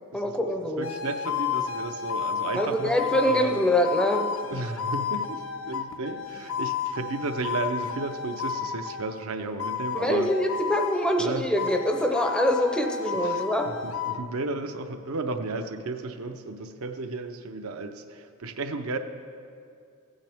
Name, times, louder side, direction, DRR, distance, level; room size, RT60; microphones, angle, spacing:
voice 1, 0.1-0.9 2.5-4.6 9.9-13.7, left 1 dB, 5° left, 3 dB, 0.5 m, -25 dB
sound 1, 0.8-9.1 9.6-11.3 11.6-14.2, left 6 dB, 65° left, 0.5 m, -32 dB
voice 2, 0.8-3.6 4.5-10.3 11.2-11.5 13.2-19.0, right 3 dB, 70° right, 7 dB, 0.6 m, -33 dB
16.0 x 8.9 x 3.5 m, 2.4 s
head